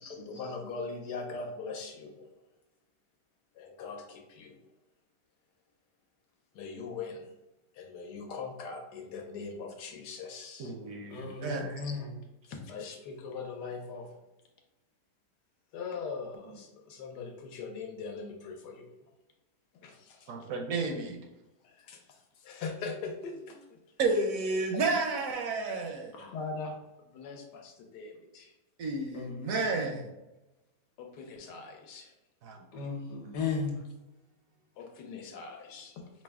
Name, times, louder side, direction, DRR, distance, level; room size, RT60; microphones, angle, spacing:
voice 1, 0.3-2.4 3.5-4.6 6.5-7.3 7.7-10.7 11.8-11.9 12.4-14.1 15.7-18.9 19.7-20.5 21.6-24.1 26.3-28.5 31.0-32.1 34.8-36.0, left 4 dB, 90° left, 1.3 m, -41 dB
voice 2, 10.6-11.8 20.3-21.2 24.0-26.3 28.8-30.1 32.4-32.7, right 3 dB, 70° right, 0.9 m, -32 dB
voice 3, 11.1-12.1 26.2-26.3 29.1-29.9 32.7-33.8, left 4 dB, 65° left, 1.3 m, -36 dB
4.7 x 2.1 x 3.4 m
omnidirectional pair, 1.8 m